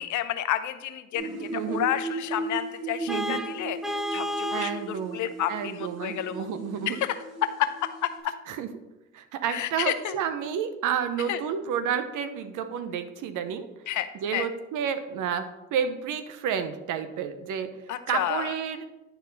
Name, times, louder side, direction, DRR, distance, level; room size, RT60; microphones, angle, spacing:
voice 1, 0.0-6.5 6.9-8.3 9.5-10.1 11.3-11.4 13.9-14.5 17.9-18.5, left 12 dB, 75° left, 11 dB, 0.7 m, -30 dB
sound 1, 1.1-8.2, right 3 dB, 55° right, 2.2 m, -36 dB
voice 2, 1.5-1.9 3.1-3.4 4.5-5.2 5.5-7.0 8.5-8.7 9.1-13.7 14.1-15.4 15.7-18.8, right 8 dB, 85° right, 10 dB, 0.8 m, -30 dB
Vehicle horn car horn honking, 3.1-4.8, left 1 dB, ahead, 0.5 m, -31 dB
10.0 x 4.5 x 4.0 m, 1.0 s
cardioid pair, 90°, 30 cm